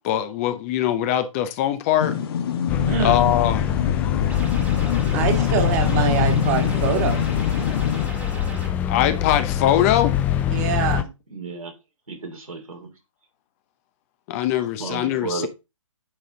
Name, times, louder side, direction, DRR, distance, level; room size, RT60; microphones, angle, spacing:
voice 1, 0.0-2.1 3.0-3.6 8.9-10.2 14.3-15.5, left 12 dB, 25° left, 0.8 m, -22 dB
sound 1, 2.0-8.1, left 7 dB, 45° left, 1.2 m, -25 dB
sound 2, 2.7-11.0, left 10 dB, 10° left, 0.4 m, -24 dB
voice 2, 2.9-3.2 5.1-7.2 10.5-11.1, right 7 dB, 30° right, 1.8 m, -24 dB
sound 3, 4.3-8.7, right 1 dB, 10° right, 1.6 m, -37 dB
voice 3, 11.3-11.7 12.1-12.9 14.8-15.5, right 4 dB, 85° right, 3.2 m, -33 dB
8.9 x 4.2 x 3.9 m
figure-of-eight pair, 140°, 17 cm